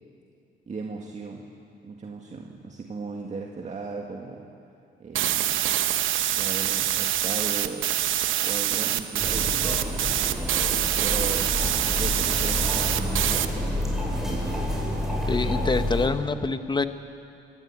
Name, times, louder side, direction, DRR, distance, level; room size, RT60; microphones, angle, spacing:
voice 1, 0.7-1.5 1.8-4.5 5.0-5.6 6.3-8.0 8.4-10.1 11.0-14.7, right 4 dB, 35° right, 0 dB, 1.8 m, -37 dB
sound 1, 5.1-13.5, right 12 dB, 80° right, 1.0 m, -25 dB
sound 2, 9.2-16.1, left 1 dB, ahead, 6.0 m, -29 dB
voice 2, 15.3-16.9, left 3 dB, 20° left, 10 dB, 1.1 m, -25 dB
23.5 x 14.5 x 8.5 m, 2.5 s
cardioid pair, 90°, 20 cm